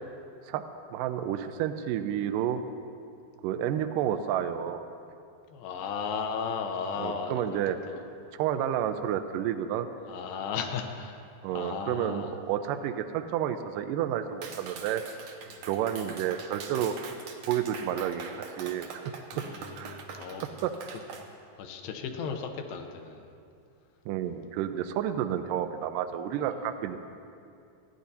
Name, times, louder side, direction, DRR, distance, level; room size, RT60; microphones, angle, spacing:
voice 1, 0.4-2.6 3.4-4.8 7.0-7.8 8.4-9.9 11.4-15.0 15.6-17.0 17.5-19.1 19.8-20.0 20.4-20.7 24.1-27.0, right 10 dB, 90° right, 8 dB, 1.9 m, -30 dB
voice 2, 5.5-7.6 7.9-8.1 10.1-11.2 11.5-12.3 19.3-20.4 21.6-23.3, left 6 dB, 75° left, 5 dB, 2.5 m, -35 dB
Clapping, 14.4-21.3, right 5 dB, 70° right, 2.0 m, -43 dB
28.0 x 10.0 x 2.8 m, 2.5 s
omnidirectional pair, 4.5 m